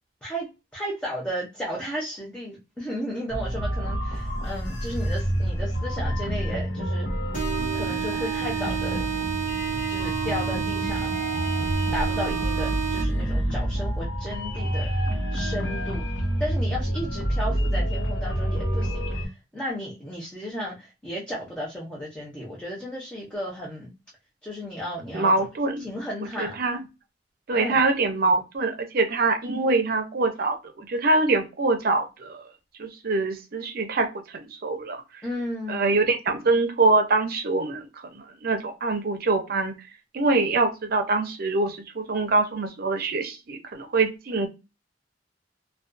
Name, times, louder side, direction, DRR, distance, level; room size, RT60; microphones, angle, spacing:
voice 1, 0.2-7.1 7.7-9.1 9.9-11.1 11.9-14.9 15.3-16.0 16.4-23.9 24.4-25.3 25.8-26.6 27.5-27.9 35.2-36.0, equal, 5° left, 0.6 m, -34 dB
sound 1, 3.3-19.3, equal, 75° left, 0.8 m, -28 dB
sound 2, 7.3-13.3, right 9 dB, 45° left, 1.0 m, -30 dB
voice 2, 25.1-25.8 26.4-26.8 27.5-32.4 32.8-35.0 35.7-37.9 38.1-39.8 40.1-44.5, right 3 dB, 55° right, 0.6 m, -24 dB
2.3 x 2.2 x 2.5 m
head